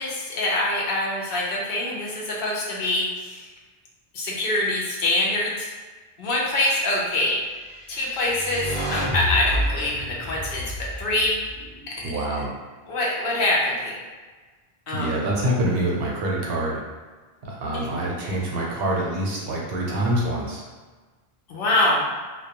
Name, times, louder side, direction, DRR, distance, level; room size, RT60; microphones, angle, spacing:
voice 1, 0.0-3.5 4.1-5.7 6.2-7.4 7.9-11.5 11.9-12.2 12.9-13.9 14.9-15.2 17.7-18.0 21.5-22.0, left 1 dB, 65° left, -4 dB, 0.8 m, -25 dB
sound 1, 7.7-12.0, left 1 dB, 35° left, 0.8 m, -30 dB
voice 2, 12.0-12.5 14.9-16.8 17.4-20.6, right 1 dB, 70° right, -3 dB, 0.8 m, -26 dB
2.2 x 2.2 x 2.8 m, 1.3 s
omnidirectional pair, 1.1 m